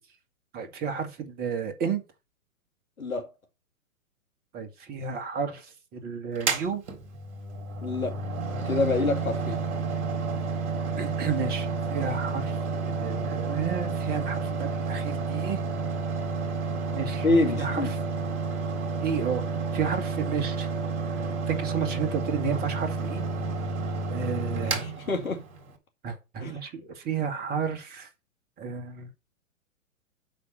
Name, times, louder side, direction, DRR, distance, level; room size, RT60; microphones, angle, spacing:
voice 1, 0.5-2.0 4.5-6.8 11.0-15.6 16.9-17.3 17.6-18.0 19.0-19.4 19.7-20.7 21.1-23.2 24.1-24.9 26.0-28.1 28.6-29.1, right 6 dB, 20° right, 1.9 m, -32 dB
Mechanical fan, 6.4-25.7, right 4 dB, 50° right, 4.0 m, -30 dB
voice 2, 7.8-8.2 8.7-9.6 17.2-17.9 24.8-25.4 26.4-26.5, left 3 dB, 75° left, 2.2 m, -26 dB
8.5 x 6.0 x 6.8 m
figure-of-eight pair, 120°, 42 cm